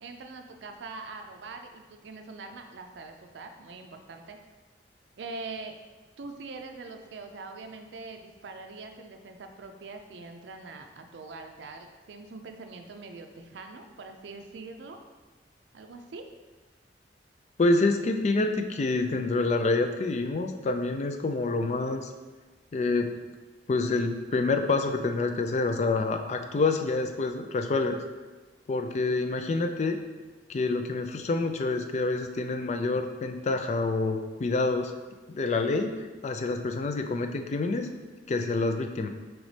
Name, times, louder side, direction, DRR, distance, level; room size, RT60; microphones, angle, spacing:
voice 1, 0.0-4.4 5.2-5.7 6.2-15.0 15.7-16.2, right 3 dB, 85° right, 5 dB, 0.4 m, -43 dB
voice 2, 17.6-22.1 22.7-23.1 23.7-28.0 28.7-30.0 30.5-34.9 35.3-35.9 36.2-37.9 38.3-39.1, left 3 dB, 40° left, 6 dB, 0.3 m, -27 dB
5.2 x 3.1 x 3.2 m, 1.3 s
head